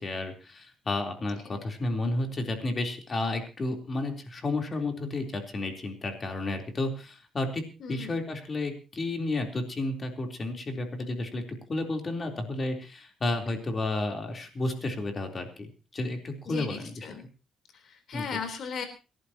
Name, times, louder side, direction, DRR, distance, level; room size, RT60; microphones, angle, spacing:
voice 1, 0.0-7.6 7.9-11.4 11.7-15.5 15.9-16.9 18.1-18.2, left 2 dB, 35° left, 4 dB, 3.6 m, -31 dB
voice 2, 7.8-8.1 16.5-17.2 17.7-18.9, left 6 dB, 60° left, 6 dB, 3.7 m, -37 dB
28.5 x 11.5 x 2.9 m, 0.32 s
cardioid pair, 90°, 0 cm